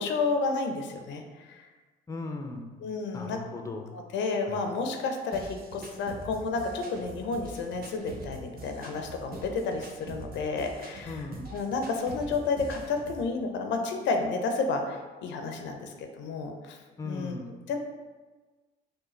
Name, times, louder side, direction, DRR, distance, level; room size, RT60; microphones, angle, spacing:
voice 1, 0.0-1.7 2.8-3.4 3.9-16.8 17.1-17.4 17.7-17.8, left 4 dB, 70° left, 4 dB, 0.5 m, -31 dB
voice 2, 2.1-2.7 3.1-3.9 4.5-4.6 11.1-11.5 17.0-17.6, left 3 dB, 15° left, 4 dB, 0.5 m, -37 dB
sound 1, 5.3-13.3, right 2 dB, 50° right, 0.6 m, -44 dB
4.7 x 2.2 x 3.1 m, 1.3 s
supercardioid pair, 65°, 19 cm